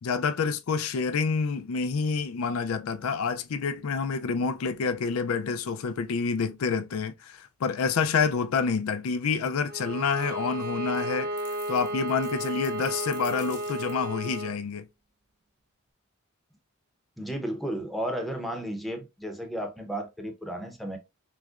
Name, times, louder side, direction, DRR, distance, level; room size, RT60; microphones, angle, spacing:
voice 1, 0.0-11.3 11.7-14.9, left 5 dB, 85° left, 0.4 m, -28 dB
Bowed string instrument, 9.7-14.6, right 1 dB, 50° right, 0.7 m, -33 dB
sound 1, 11.4-14.2, left 7 dB, 60° left, 0.9 m, -49 dB
voice 2, 17.2-21.0, right 1 dB, ahead, 0.7 m, -33 dB
6.1 x 2.1 x 2.4 m
head